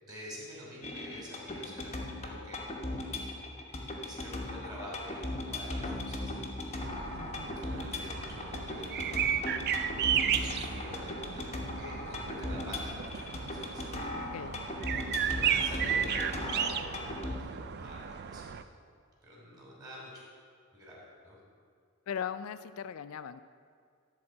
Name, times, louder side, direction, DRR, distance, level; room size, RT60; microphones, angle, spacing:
voice 1, 0.0-3.0 3.7-6.3 7.2-9.3 10.0-13.9 14.9-18.5 19.2-20.3 20.7-21.4, equal, 20° right, -4 dB, 2.9 m, -47 dB
sound 1, 0.8-17.4, left 2 dB, 30° left, 1.1 m, -38 dB
sound 2, 6.8-18.6, right 8 dB, 50° right, 0.4 m, -34 dB
voice 2, 7.1-7.5 14.1-14.6 22.1-23.4, left 8 dB, 75° left, 13 dB, 0.3 m, -39 dB
12.0 x 4.2 x 7.6 m, 2.2 s
head